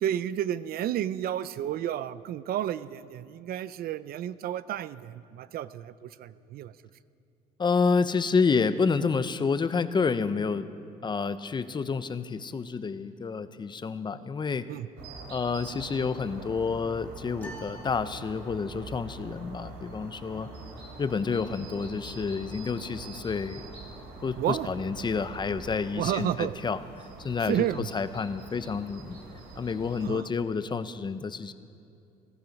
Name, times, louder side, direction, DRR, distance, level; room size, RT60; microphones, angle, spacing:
voice 1, 0.0-6.7 14.7-14.9 24.4-24.7 26.0-26.5 27.5-27.9 30.0-30.3, right 11 dB, 65° right, 16 dB, 0.5 m, -31 dB
voice 2, 7.6-10.7 11.0-14.6 15.3-20.5 21.0-23.7 24.2-26.8 27.2-29.2 29.6-31.5, left 5 dB, 25° left, 12 dB, 0.7 m, -29 dB
sound 1, 15.0-30.1, right 3 dB, 80° right, 3.3 m, -45 dB
sound 2, 17.4-18.9, equal, 10° left, 2.8 m, -47 dB
18.5 x 14.5 x 5.3 m, 2.5 s
cardioid pair, 110°, 17 cm